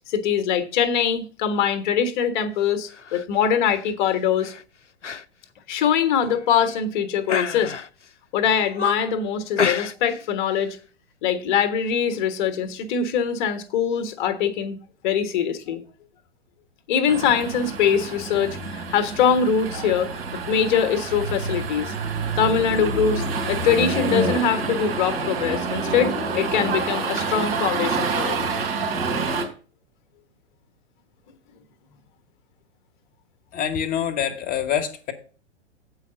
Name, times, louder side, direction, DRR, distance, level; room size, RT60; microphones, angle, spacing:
voice 1, 0.0-4.5 5.7-7.7 8.3-10.8 11.2-14.8 15.0-15.8 16.9-21.9 22.4-28.4, left 7 dB, 45° left, 1.2 m, -23 dB
sound 1, 2.9-3.2 3.7-3.9 4.4-4.6 5.0-5.2 5.6-5.7 6.3-6.8 7.3-8.1 8.5-9.2 9.6-10.2 10.5-10.7, left 6 dB, 90° left, 0.5 m, -29 dB
carnevali sound walk, 17.1-29.4, right 4 dB, 55° right, 2.9 m, -27 dB
voice 2, 33.5-35.1, left 9 dB, 25° left, 1.3 m, -25 dB
8.1 x 4.8 x 6.7 m
figure-of-eight pair, 105°, 35 cm